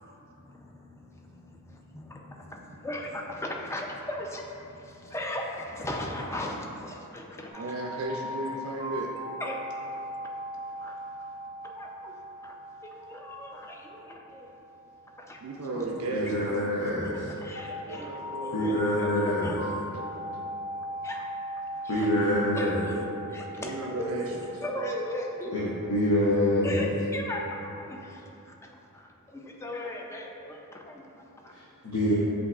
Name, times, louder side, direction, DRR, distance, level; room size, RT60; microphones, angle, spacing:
voice 1, 0.2-7.7 9.4-9.6 9.9-10.0 10.8-11.0 11.6-12.1 12.4-12.5 12.8-14.5 15.2-15.4 17.4-19.9 21.0-21.2 21.7-22.1 22.5-23.0 23.3-25.7 26.6-28.5 28.9-31.5, left 1 dB, 10° left, 0 dB, 0.3 m, -38 dB
sound 1, 7.5-16.3 17.5-26.7, equal, 40° left, 1.1 m, -39 dB
voice 2, 7.6-9.1 15.4-16.6 17.9-18.8 23.6-24.3, right 2 dB, 65° right, -1 dB, 0.4 m, -34 dB
voice 3, 16.1-17.3 18.5-19.6 21.9-22.8 25.5-26.8 31.5-32.1, left 1 dB, 80° left, -8 dB, 0.7 m, -26 dB
7.8 x 2.7 x 2.3 m, 2.9 s
head